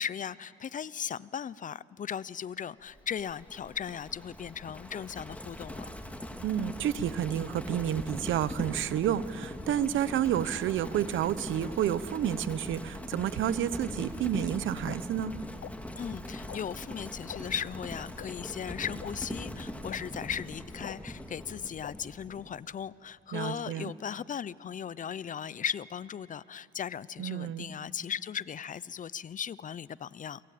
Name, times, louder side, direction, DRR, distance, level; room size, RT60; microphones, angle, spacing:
voice 1, 0.0-5.9 16.0-30.4, left 8 dB, 40° left, 20 dB, 0.6 m, -37 dB
Livestock farm animals working animals, 2.9-22.5, left 1 dB, 5° left, 2.2 m, -41 dB
voice 2, 6.4-15.3 23.3-23.9 27.2-27.7, right 10 dB, 75° right, 15 dB, 1.0 m, -30 dB
sound 1, 14.9-15.0 15.6-15.7 16.5-16.6 17.3-17.4 18.2-18.3 19.0-19.1 19.9-20.0 20.8-21.0 21.8-21.9, left 11 dB, 65° left, 1.0 m, -42 dB
29.5 x 23.0 x 8.6 m, 2.5 s
cardioid pair, 90°, 20 cm